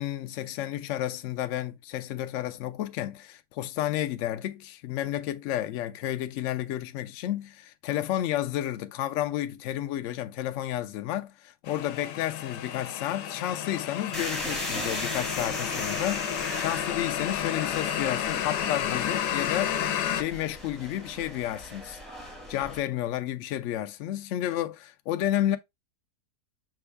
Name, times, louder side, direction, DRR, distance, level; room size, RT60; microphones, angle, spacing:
voice 1, 0.0-22.0 22.5-25.6, left 12 dB, 70° left, 0.7 m, -31 dB
sound 1, 11.7-20.2, left 10 dB, 90° left, 1.2 m, -31 dB
sound 2, 14.1-22.8, equal, ahead, 0.6 m, -38 dB
6.1 x 2.3 x 3.2 m
omnidirectional pair, 1.8 m